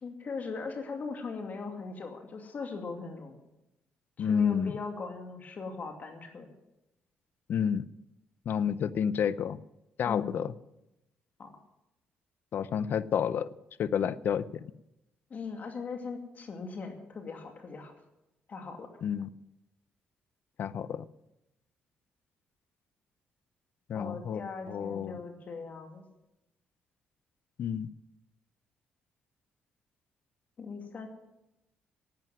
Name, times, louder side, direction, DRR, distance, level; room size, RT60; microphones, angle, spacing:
voice 1, 0.0-3.4 4.2-6.5 10.0-10.4 11.4-11.5 15.3-17.9 18.5-18.9 23.9-26.1 30.6-31.1, left 4 dB, 50° left, 4 dB, 2.4 m, -39 dB
voice 2, 4.2-4.7 7.5-7.9 8.5-9.6 10.0-10.5 12.5-13.5 13.8-14.5 19.0-19.3 20.6-21.1 23.9-25.2 27.6-27.9, left 8 dB, 65° left, 17 dB, 0.6 m, -30 dB
12.0 x 9.1 x 9.3 m, 0.92 s
cardioid pair, 85°, 4 cm